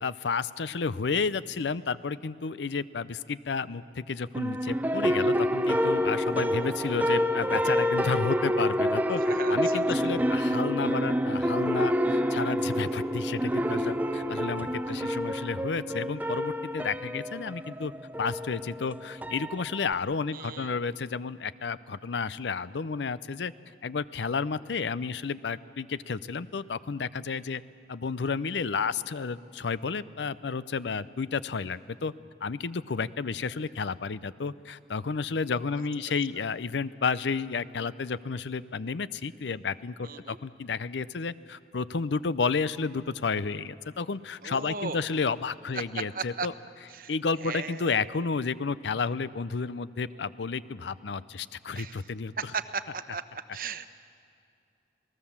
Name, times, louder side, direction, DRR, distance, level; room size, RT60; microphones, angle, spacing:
voice 1, 0.0-9.2 9.5-17.9 18.2-23.5 23.8-27.6 27.9-32.1 32.4-46.5 47.1-52.5, left 5 dB, 85° left, 17 dB, 0.6 m, -31 dB
sound 1, 4.3-19.9, equal, 10° right, 0.6 m, -28 dB
voice 2, 9.2-10.1 20.3-20.8 36.4-36.5 40.0-40.4 44.4-45.0 45.7-46.5 46.9-47.1 47.4-48.1 51.7-52.0 52.4-53.2 53.5-53.9, right 5 dB, 50° right, 11 dB, 0.9 m, -36 dB
28.0 x 19.0 x 7.3 m, 2.4 s
head